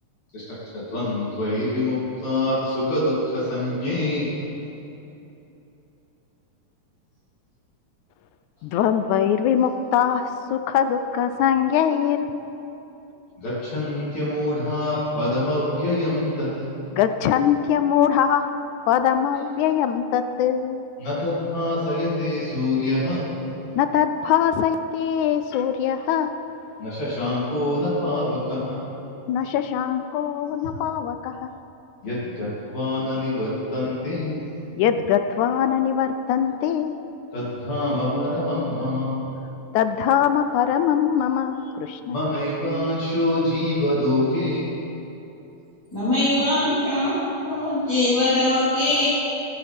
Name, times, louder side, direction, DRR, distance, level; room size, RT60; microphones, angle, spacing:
voice 1, 0.3-4.4 13.4-16.8 21.0-23.4 26.8-29.0 32.0-34.5 37.3-39.4 42.1-44.9, left 1 dB, 55° left, -9 dB, 4.1 m, -25 dB
voice 2, 8.6-12.3 16.9-18.6 18.9-20.9 23.8-26.4 29.3-31.5 34.8-37.0 39.7-42.2, left 9 dB, 80° left, 9 dB, 1.8 m, -22 dB
voice 3, 45.9-49.1, left 1 dB, 5° left, -13 dB, 4.1 m, -22 dB
24.0 x 13.0 x 3.5 m, 2.9 s
omnidirectional pair, 3.8 m